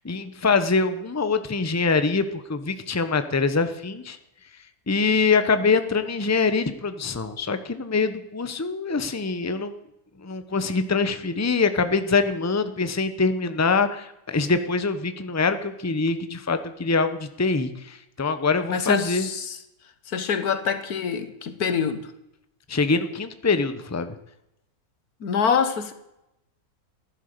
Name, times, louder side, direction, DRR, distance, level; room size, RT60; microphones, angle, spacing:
voice 1, 0.0-4.2 4.9-9.7 10.2-19.3 22.7-24.1, left 4 dB, 15° left, 10 dB, 0.8 m, -24 dB
voice 2, 18.7-19.6 20.1-22.1 25.2-25.9, left 6 dB, 90° left, 10 dB, 1.8 m, -25 dB
15.5 x 11.0 x 6.8 m, 0.86 s
omnidirectional pair, 1.6 m